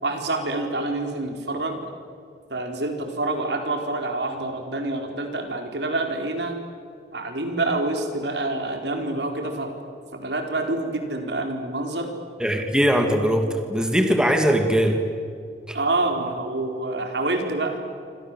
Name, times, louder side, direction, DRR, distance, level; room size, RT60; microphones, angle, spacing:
voice 1, 0.0-1.9 2.5-6.6 7.1-9.7 10.1-12.1 15.7-17.8, right 2 dB, 75° right, 4 dB, 4.5 m, -27 dB
voice 2, 12.4-15.0 15.7-15.8, equal, 5° right, 4 dB, 2.3 m, -20 dB
28.5 x 25.5 x 7.7 m, 2.3 s
head